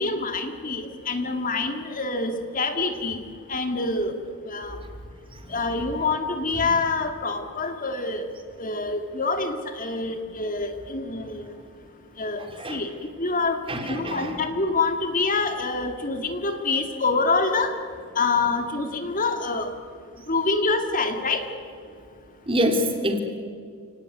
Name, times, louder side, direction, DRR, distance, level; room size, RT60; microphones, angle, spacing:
voice 1, 0.0-3.2 3.5-4.2 4.5-4.8 5.5-8.3 8.6-11.5 12.2-12.9 13.2-17.7 18.2-19.7 20.3-21.4, left 3 dB, 35° left, 6 dB, 2.2 m, -26 dB
voice 2, 13.7-14.3 22.5-23.2, equal, 25° right, 5 dB, 3.0 m, -25 dB
30.0 x 18.5 x 9.4 m, 2.2 s
head